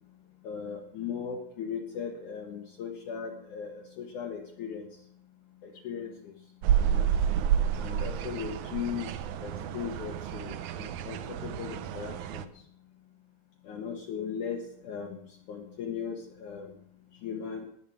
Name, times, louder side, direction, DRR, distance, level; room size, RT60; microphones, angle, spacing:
voice 1, 0.4-5.1 5.6-6.4 6.8-7.1 7.7-9.1 9.4-12.5 13.6-16.7 17.1-17.7, left 7 dB, 65° left, 1 dB, 2.4 m, -38 dB
sound 1, 6.6-12.5, right 9 dB, 80° right, 1.8 m, -30 dB
19.5 x 7.5 x 6.2 m, 0.67 s
omnidirectional pair, 4.3 m